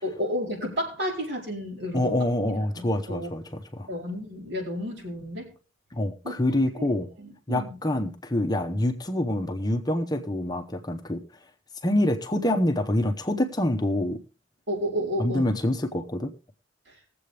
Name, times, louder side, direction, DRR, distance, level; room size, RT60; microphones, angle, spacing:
voice 1, 0.0-2.1 2.7-3.3 3.9-5.5 6.2-6.3 6.8-6.9 7.2-7.8 14.7-15.5, equal, 60° right, -1 dB, 4.6 m, -31 dB
voice 2, 1.9-3.9 5.9-7.1 7.5-11.2 11.8-14.2 15.2-16.3, left 1 dB, 20° left, 5 dB, 0.8 m, -26 dB
20.0 x 7.7 x 3.3 m, 0.35 s
head